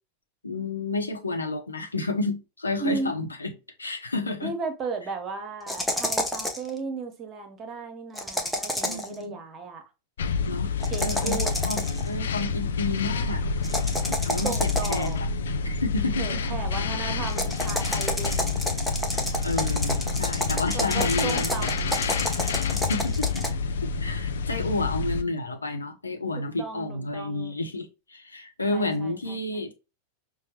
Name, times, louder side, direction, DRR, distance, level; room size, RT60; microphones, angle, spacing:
voice 1, 0.4-3.5 3.8-4.6 8.8-9.4 10.5-10.8 11.0-13.4 14.1-15.3 15.6-16.4 19.4-21.7 22.7-23.4 24.0-29.7, left 2 dB, 80° left, 0.8 m, -30 dB
voice 2, 2.8-3.1 4.4-9.8 10.9-11.5 14.4-15.2 16.2-18.6 20.7-22.0 26.4-27.6 28.7-29.4, right 4 dB, 25° right, 0.9 m, -35 dB
sound 1, 5.7-6.7 8.1-9.1 10.8-12.1 13.6-15.2 17.3-23.5, left 1 dB, 5° left, 0.7 m, -30 dB
sound 2, 10.2-25.2, left 4 dB, 65° left, 0.4 m, -28 dB
5.5 x 2.1 x 2.9 m
figure-of-eight pair, 90°, 0 cm